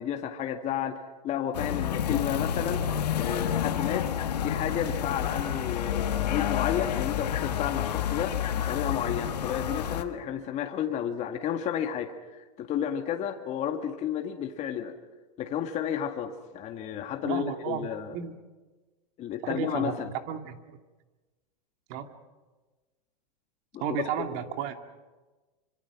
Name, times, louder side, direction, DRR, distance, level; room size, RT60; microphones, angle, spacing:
voice 1, 0.0-2.8 3.2-4.1 4.4-14.9 15.4-18.2 19.2-20.1 23.7-23.8, left 9 dB, 35° left, 5 dB, 2.0 m, -32 dB
sound 1, 1.5-10.0, left 9 dB, 90° left, 1.8 m, -29 dB
voice 2, 17.2-17.9 18.1-18.3 19.4-19.9 20.3-20.6 21.9-22.1 23.8-24.7, right 9 dB, 50° right, 6 dB, 2.4 m, -32 dB
27.0 x 25.0 x 6.1 m, 1.2 s
hypercardioid pair, 120°, 20 cm